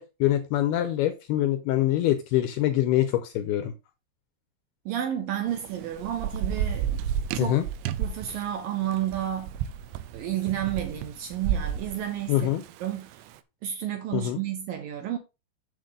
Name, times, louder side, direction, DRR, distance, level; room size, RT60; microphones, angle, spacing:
voice 1, 0.0-3.7 7.4-7.6 12.3-12.6 14.1-14.4, left 13 dB, 80° left, 2.4 m, -24 dB
voice 2, 4.9-7.0 7.3-7.6 8.0-9.5 10.1-12.6 12.8-13.2 13.6-15.2, right 11 dB, 70° right, 2.3 m, -31 dB
Thunder / Rain, 5.5-13.1, right 9 dB, 90° right, 3.0 m, -32 dB
7.9 x 7.2 x 3.7 m
omnidirectional pair, 5.2 m